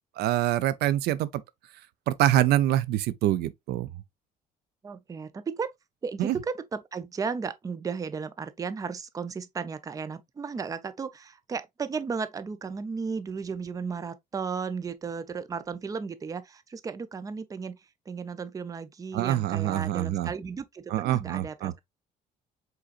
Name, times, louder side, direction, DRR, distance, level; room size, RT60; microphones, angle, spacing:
voice 1, 0.2-1.4 2.1-3.9 6.2-6.4 19.1-20.3 20.9-21.7, right 13 dB, 75° right, 0.5 m, -25 dB
voice 2, 4.8-5.7 6.0-17.8 18.1-21.8, right 5 dB, 20° right, 0.4 m, -34 dB
5.0 x 3.9 x 2.4 m
cardioid pair, 110°, 17 cm